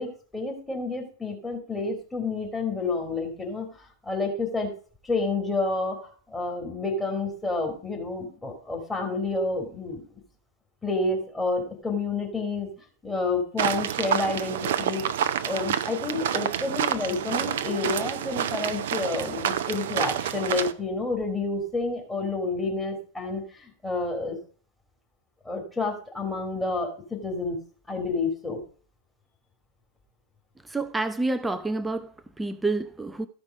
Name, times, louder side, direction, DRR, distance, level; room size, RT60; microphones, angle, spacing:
voice 1, 0.0-3.7 4.0-4.7 5.0-6.0 6.3-10.0 10.8-12.7 13.0-15.0 15.4-24.4 25.4-27.6 27.9-28.6, left 3 dB, 10° left, 2.8 m, -29 dB
sound 1, 13.6-20.7, right 9 dB, 60° right, 0.6 m, -28 dB
voice 2, 30.7-33.3, right 2 dB, 10° right, 0.7 m, -28 dB
14.0 x 5.3 x 5.1 m
figure-of-eight pair, 90°, 0 cm